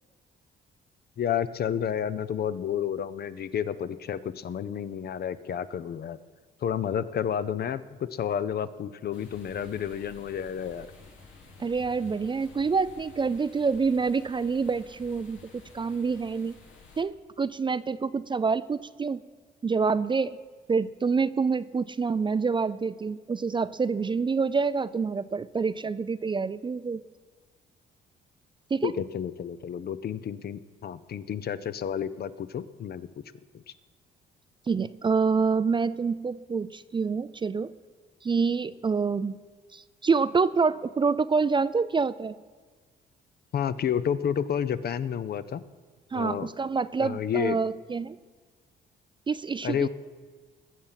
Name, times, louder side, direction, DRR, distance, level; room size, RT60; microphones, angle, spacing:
voice 1, 1.2-6.2 6.6-10.9 28.8-33.1 33.5-33.8 43.5-45.6 46.1-46.5 47.0-47.6 49.6-49.9, left 8 dB, 50° left, 14 dB, 0.6 m, -30 dB
sound 1, 9.1-17.0, left 3 dB, 80° left, 2.3 m, -51 dB
voice 2, 11.6-16.6 17.0-19.2 19.6-20.4 20.7-27.0 28.7-28.9 34.7-37.7 38.2-39.4 39.7-42.3 46.1-48.2 49.3-49.9, right 5 dB, 25° right, 15 dB, 0.4 m, -27 dB
20.5 x 7.2 x 5.7 m, 1.4 s
cardioid pair, 90°, 20 cm